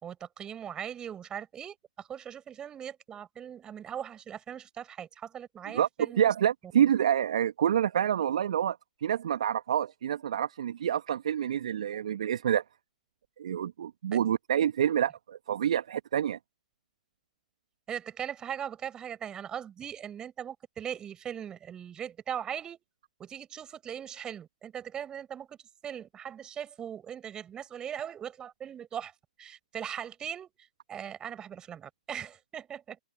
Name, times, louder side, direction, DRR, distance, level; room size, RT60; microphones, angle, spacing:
voice 1, 0.0-6.3 14.1-14.3 17.9-22.8 23.2-29.1 29.4-30.5 30.9-33.0, right 9 dB, 20° right, 5.8 m, -40 dB
voice 2, 6.2-12.6 13.4-16.4, right 9 dB, 60° right, 1.8 m, -27 dB
figure-of-eight pair, 115°, 4 cm